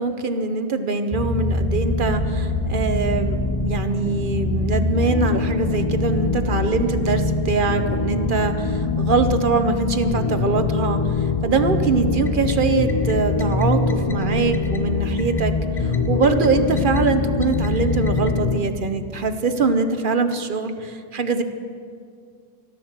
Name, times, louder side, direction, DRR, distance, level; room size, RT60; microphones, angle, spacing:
voice 1, 0.0-11.0 11.4-15.5 16.1-21.4, right 4 dB, 45° right, 8 dB, 0.8 m, -23 dB
sound 1, 1.1-18.6, left 3 dB, 30° left, 0.4 m, -23 dB
14.5 x 13.0 x 7.3 m, 2.3 s
omnidirectional pair, 1.6 m